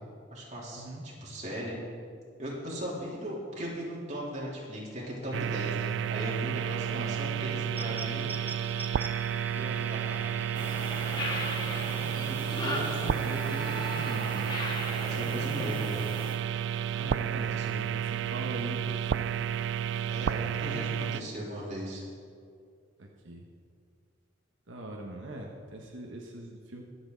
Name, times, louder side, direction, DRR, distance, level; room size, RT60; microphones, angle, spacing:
voice 1, 0.3-1.8 2.4-8.3 9.4-10.2 14.7-16.0 17.5-17.8 20.1-22.0, equal, 40° right, -5 dB, 3.5 m, -38 dB
impro recorded wt redsquare, 5.3-21.2, right 9 dB, 65° right, 0.3 m, -31 dB
sound 1, 7.8-14.6, right 2 dB, 10° right, 0.8 m, -45 dB
sound 2, 10.5-16.3, left 1 dB, 25° left, 1.9 m, -37 dB
voice 2, 12.0-14.5 16.9-17.5 17.9-19.4 19.9-20.6 23.0-23.5 24.7-26.8, right 1 dB, 85° right, -1 dB, 1.3 m, -41 dB
23.0 x 8.0 x 4.0 m, 2.3 s
head